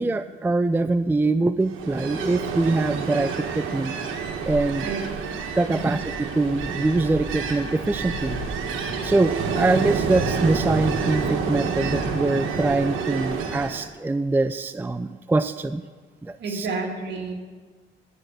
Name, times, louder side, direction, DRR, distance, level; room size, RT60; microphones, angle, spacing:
voice 1, 0.0-3.9 4.4-4.8 5.6-8.4 9.0-15.8 16.2-16.7, right 2 dB, 10° right, 12 dB, 0.4 m, -23 dB
Ocean, 1.7-13.8, right 6 dB, 85° right, 1.3 m, -28 dB
sound 1, 6.4-12.4, left 1 dB, 20° left, 3.7 m, -38 dB
voice 2, 16.4-17.3, right 4 dB, 60° right, 1 dB, 2.2 m, -30 dB
12.5 x 7.7 x 6.6 m, 1.4 s
cardioid pair, 90°, 20 cm